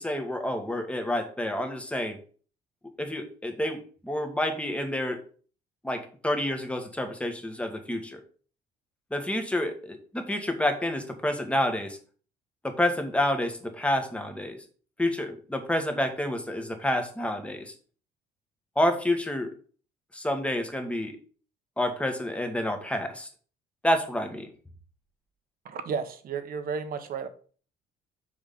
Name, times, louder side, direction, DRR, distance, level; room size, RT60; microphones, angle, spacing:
voice 1, 0.0-2.2 3.0-5.2 5.8-8.2 9.1-12.0 12.6-14.6 15.0-17.7 18.7-19.5 20.1-21.2 21.8-23.3 23.8-24.5, left 1 dB, 5° left, 5 dB, 1.6 m, -29 dB
voice 2, 25.6-27.3, right 6 dB, 55° right, 9 dB, 1.2 m, -33 dB
6.5 x 4.8 x 5.5 m, 0.41 s
cardioid pair, 100°, 17 cm